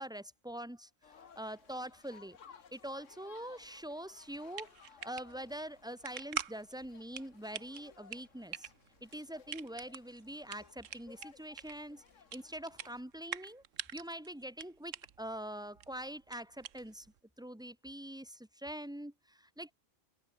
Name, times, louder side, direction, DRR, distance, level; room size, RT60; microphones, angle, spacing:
voice 1, 0.0-2.4 2.7-8.7 9.0-12.0 12.3-13.6 13.9-17.1 17.4-19.7, right 1 dB, 5° right, 1.6 m, -44 dB
sound 1, 1.0-13.0, left 7 dB, 80° left, 1.7 m, -60 dB
sound 2, 4.2-17.2, right 9 dB, 85° right, 1.3 m, -46 dB
omnidirectional pair, 1.3 m